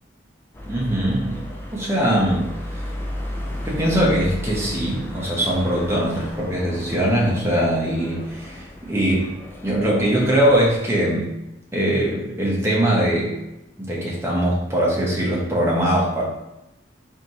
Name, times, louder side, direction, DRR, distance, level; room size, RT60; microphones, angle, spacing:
sound 1, 0.5-10.8, left 1 dB, 10° left, 0.4 m, -34 dB
voice 1, 0.7-1.4 1.7-2.8 3.6-9.4 9.6-11.3 11.7-13.4 13.8-16.2, right 1 dB, 15° right, -5 dB, 0.9 m, -21 dB
4.0 x 2.7 x 3.0 m, 0.93 s
head